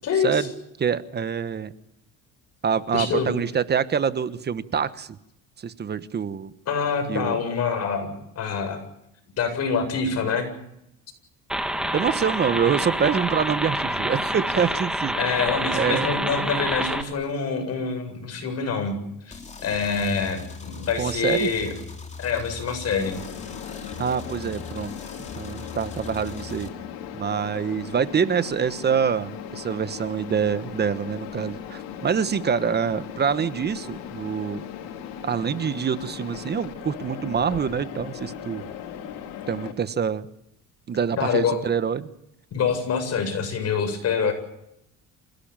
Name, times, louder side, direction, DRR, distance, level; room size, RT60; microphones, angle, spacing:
voice 1, 0.0-0.5 2.9-3.3 6.7-8.1 8.4-8.8 9.4-10.5 15.2-19.0 19.3-21.7 22.2-23.2 41.2-41.6 42.5-44.3, left 5 dB, 50° left, 7 dB, 7.9 m, -26 dB
voice 2, 0.8-1.7 2.6-5.1 5.6-6.5 7.1-7.4 11.9-15.2 15.7-16.1 21.0-21.5 24.0-24.9 25.4-26.7 27.1-34.6 35.2-38.6 39.5-40.3 40.9-42.1, right 7 dB, 30° right, 13 dB, 1.3 m, -25 dB
sound 1, 11.5-17.0, right 1 dB, ahead, 2.2 m, -27 dB
sound 2, 19.3-26.7, left 4 dB, 20° left, 3.1 m, -40 dB
Mechanisms, 23.0-39.7, left 8 dB, 90° left, 4.4 m, -38 dB
27.5 x 17.5 x 8.9 m, 0.80 s
cardioid pair, 135°, 33 cm